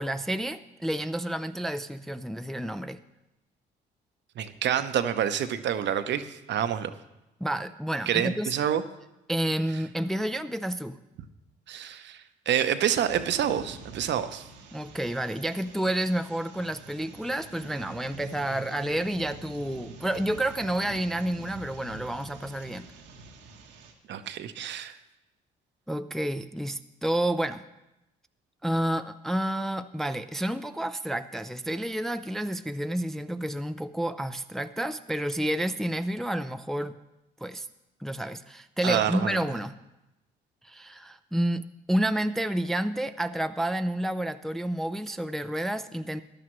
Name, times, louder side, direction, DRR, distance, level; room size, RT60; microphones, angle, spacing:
voice 1, 0.0-3.0 7.4-8.5 9.3-11.0 14.7-22.9 25.9-27.6 28.6-36.9 37.4-37.7 38.0-39.8 40.6-46.2, right 1 dB, ahead, 10 dB, 0.4 m, -30 dB
voice 2, 4.4-6.9 8.1-8.8 11.7-14.4 24.1-25.0 38.8-39.4, right 9 dB, 60° right, 10 dB, 0.8 m, -28 dB
sound 1, 13.1-23.9, right 3 dB, 90° right, 1.3 m, -46 dB
14.5 x 10.5 x 3.1 m, 0.94 s
hypercardioid pair, 60°, 21 cm